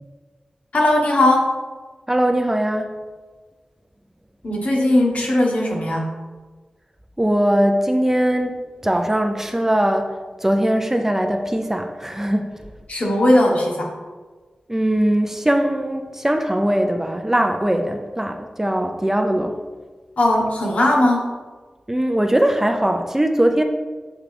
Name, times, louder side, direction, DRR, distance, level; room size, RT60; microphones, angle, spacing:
voice 1, 0.7-1.5 4.4-6.0 12.9-13.9 20.2-21.2, left 1 dB, 70° left, -1 dB, 1.3 m, -18 dB
voice 2, 2.1-2.9 7.2-10.1 10.4-12.6 14.7-19.6 21.9-23.6, right 1 dB, 15° right, 5 dB, 0.5 m, -20 dB
7.3 x 4.6 x 3.4 m, 1.4 s
wide cardioid pair, 65°, 2 cm